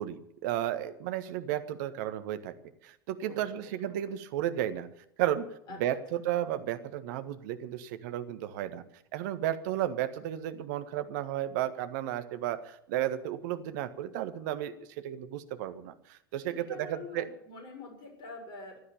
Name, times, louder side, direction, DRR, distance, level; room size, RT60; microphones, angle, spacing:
voice 1, 0.0-2.5 2.8-4.9 5.2-5.5 5.8-8.8 9.1-17.3, right 12 dB, 50° right, 10 dB, 1.5 m, -33 dB
voice 2, 3.2-3.7 4.0-4.1 5.7-5.8 16.5-18.8, left 3 dB, 40° left, 4 dB, 6.5 m, -45 dB
16.0 x 11.5 x 7.2 m, 0.75 s
figure-of-eight pair, 85°, 12 cm